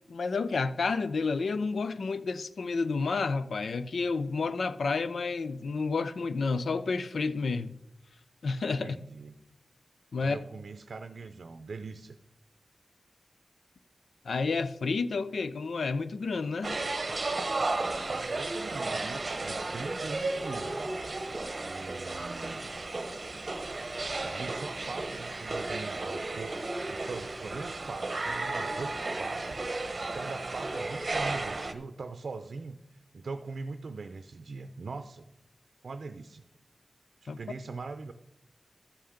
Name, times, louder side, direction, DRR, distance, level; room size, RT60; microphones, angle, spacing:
voice 1, 0.1-7.8 8.4-9.0 10.1-10.4 14.2-16.8 37.3-37.4, left 4 dB, 85° left, 0.5 m, -30 dB
voice 2, 8.8-9.3 10.2-12.2 17.9-20.9 21.6-22.7 24.2-35.3 35.8-36.5 37.2-38.1, right 4 dB, 75° right, 0.6 m, -41 dB
sound 1, 16.6-31.7, right 2 dB, 40° right, 1.0 m, -34 dB
13.0 x 5.7 x 6.5 m
wide cardioid pair, 105°, 0 cm